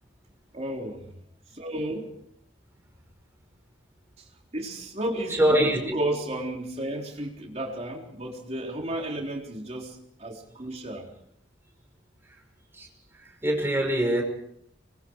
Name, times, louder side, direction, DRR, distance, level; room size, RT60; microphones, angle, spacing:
voice 1, 0.5-1.1 1.5-2.2 4.5-11.1, right 1 dB, 35° right, 0 dB, 3.9 m, -33 dB
voice 2, 5.4-6.0 12.7-12.9 13.2-14.2, right 1 dB, 15° right, 2 dB, 5.4 m, -23 dB
25.5 x 22.0 x 4.8 m, 0.72 s
head